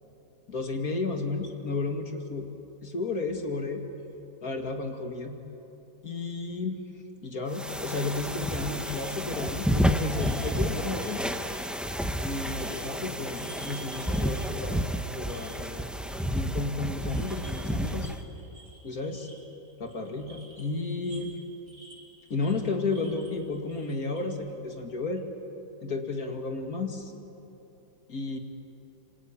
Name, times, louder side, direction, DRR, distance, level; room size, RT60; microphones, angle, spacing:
voice 1, 0.5-2.5 2.8-3.8 4.4-5.4 6.0-6.8 7.2-11.3 12.2-15.9 16.3-18.1 18.8-19.3 19.8-21.4 22.3-25.2 25.8-27.1 28.1-28.4, left 3 dB, 50° left, 4 dB, 2.6 m, -32 dB
sound 1, 7.5-18.2, equal, ahead, 0.6 m, -31 dB
sound 2, 8.8-12.8 13.1-16.6 16.8-24.3, right 2 dB, 45° right, 4.6 m, -52 dB
27.5 x 25.5 x 8.6 m, 3.0 s
omnidirectional pair, 2.0 m